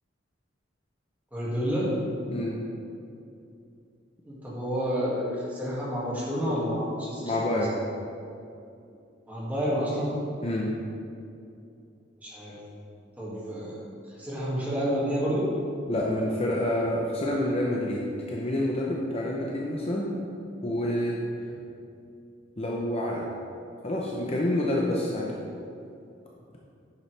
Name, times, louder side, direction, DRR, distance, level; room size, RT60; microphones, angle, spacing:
voice 1, 1.3-1.9 4.2-7.3 9.3-10.2 12.2-12.6 13.2-13.8 14.2-15.5, equal, 10° right, -8 dB, 2.1 m, -29 dB
voice 2, 7.2-7.8 10.4-10.7 15.9-18.0 18.3-20.2 20.6-21.2 22.6-23.3 23.8-25.3, left 1 dB, 30° left, -3 dB, 0.7 m, -28 dB
9.9 x 7.3 x 3.4 m, 2.6 s
head